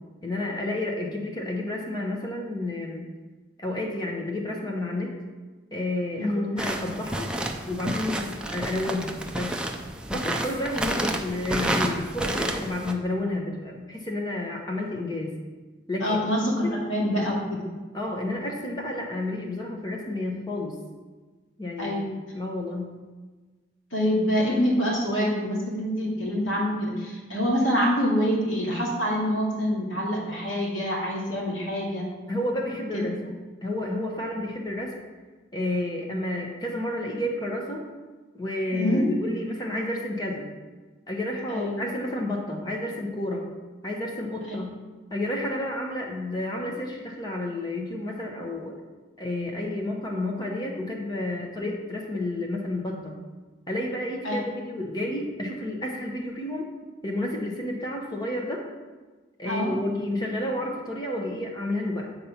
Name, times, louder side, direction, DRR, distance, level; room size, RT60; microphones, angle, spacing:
voice 1, 0.2-3.1 3.6-5.1 5.7-7.3 7.7-9.6 10.1-15.3 15.9-16.2 16.6-16.8 17.9-20.8 21.6-22.1 22.3-22.9 32.3-33.2 33.6-34.9 35.5-37.9 38.3-40.5 41.1-43.5 43.8-44.7 45.1-48.7 49.2-53.2 53.7-56.7 57.0-58.6 59.4-62.1, left 1 dB, 20° left, 0 dB, 0.9 m, -30 dB
voice 2, 6.2-6.6 10.9-11.1 16.0-17.7 21.8-22.1 23.9-32.0 32.9-33.1 38.7-39.0 41.5-41.8 44.5-44.6 54.2-54.4 59.4-59.7, equal, 80° left, -3 dB, 2.2 m, -26 dB
sound 1, 6.6-12.9, right 1 dB, 5° right, 0.4 m, -30 dB
8.3 x 4.1 x 5.8 m, 1.3 s
head